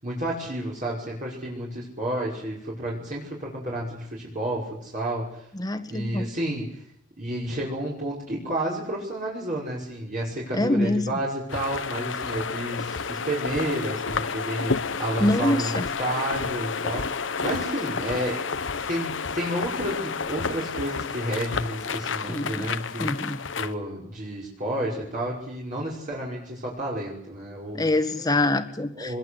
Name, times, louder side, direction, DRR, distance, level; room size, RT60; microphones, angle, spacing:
voice 1, 0.0-5.4 5.9-6.7 7.2-18.4 18.9-27.9 28.9-29.2, right 1 dB, 45° right, -5 dB, 5.7 m, -31 dB
voice 2, 5.6-6.2 10.5-11.1 15.2-15.8 22.3-22.7 23.0-23.4 27.7-29.2, left 1 dB, 20° left, 8 dB, 1.7 m, -25 dB
sound 1, 11.5-23.7, left 5 dB, 90° left, 1.0 m, -30 dB
25.0 x 22.0 x 8.1 m, 0.73 s
head